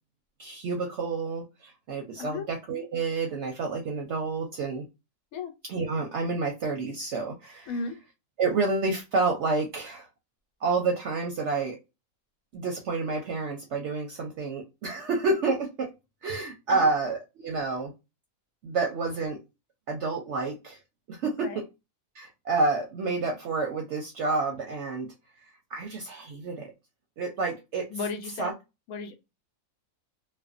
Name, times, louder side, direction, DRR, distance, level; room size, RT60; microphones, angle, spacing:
voice 1, 0.4-4.8 5.7-7.7 8.4-10.1 10.6-11.8 12.5-15.9 16.2-17.9 18.6-19.4 19.9-20.8 21.1-21.6 22.1-25.1 25.7-26.7 27.2-27.9 28.4-28.5, right 3 dB, 65° right, 0.8 m, -29 dB
voice 2, 2.2-2.5 5.3-5.5 7.7-8.0 16.7-16.9 21.4-21.6 27.9-28.5 28.9-29.2, left 4 dB, 85° left, 1.1 m, -34 dB
2.5 x 2.1 x 2.3 m
omnidirectional pair, 1.5 m